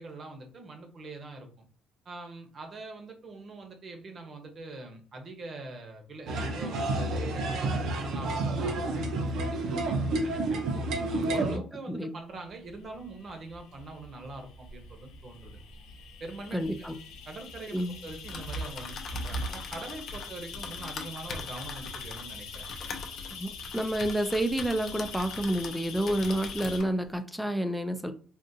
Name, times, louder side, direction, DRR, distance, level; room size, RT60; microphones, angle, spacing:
voice 1, 0.0-1.7 2.0-10.6 11.1-15.6 16.2-16.9 17.3-17.8 18.0-22.7, right 2 dB, 35° right, 5 dB, 0.8 m, -43 dB
sound 1, 6.3-11.6, right 2 dB, 65° right, 0.6 m, -30 dB
sound 2, 12.4-26.8, left 5 dB, 90° left, 1.0 m, -44 dB
voice 2, 16.5-16.9 17.7-18.0 23.4-28.1, right 1 dB, ahead, 8 dB, 0.3 m, -29 dB
Typing, 18.1-25.8 26.1-26.9, left 1 dB, 45° left, 0.6 m, -39 dB
3.6 x 2.4 x 2.6 m, 0.40 s
cardioid pair, 130°, 0 cm